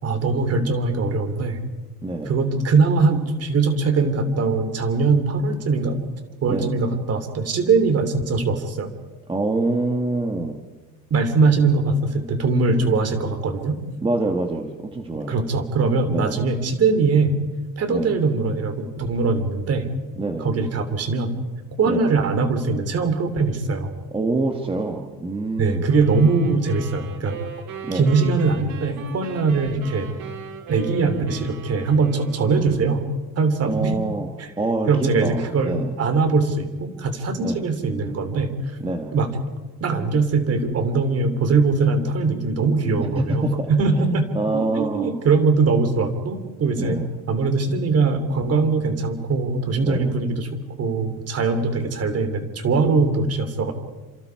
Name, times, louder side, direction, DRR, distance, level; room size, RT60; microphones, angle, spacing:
voice 1, 0.0-1.6 2.2-6.0 6.4-8.9 11.1-13.8 15.1-17.3 17.8-19.9 20.4-21.3 21.8-23.9 25.6-27.4 27.9-30.1 30.7-33.1 33.4-34.0 34.4-34.5 34.9-38.8 39.1-39.3 39.8-47.0 47.3-53.7, right 4 dB, 45° right, 8 dB, 3.2 m, -21 dB
voice 2, 2.0-2.3 6.5-6.8 9.3-10.6 14.0-15.4 16.1-16.4 17.9-18.1 20.2-20.5 21.8-22.1 24.1-25.9 27.8-28.1 33.6-34.3 34.6-35.9 37.4-37.7 38.8-39.1 43.0-43.7 44.0-45.1 46.8-47.1 49.8-50.1, right 2 dB, 15° right, 4 dB, 1.4 m, -26 dB
sound 1, 25.9-33.1, right 6 dB, 70° right, 4.4 m, -38 dB
30.0 x 27.0 x 4.7 m, 1.3 s
cardioid pair, 165°, 36 cm